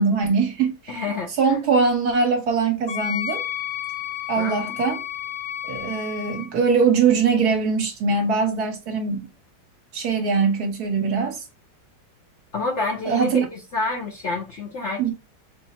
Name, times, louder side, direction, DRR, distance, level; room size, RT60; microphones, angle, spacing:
voice 1, 0.0-1.0 1.4-3.4 4.3-5.0 5.6-9.3 9.9-11.4 13.0-13.4 15.0-15.1, right 5 dB, 65° right, 1.5 m, -22 dB
voice 2, 0.9-1.6 4.4-4.8 12.5-15.1, left 3 dB, 55° left, 0.8 m, -28 dB
Wind instrument woodwind instrument, 2.9-6.5, left 10 dB, 80° left, 0.4 m, -31 dB
4.3 x 2.0 x 4.1 m
omnidirectional pair, 1.9 m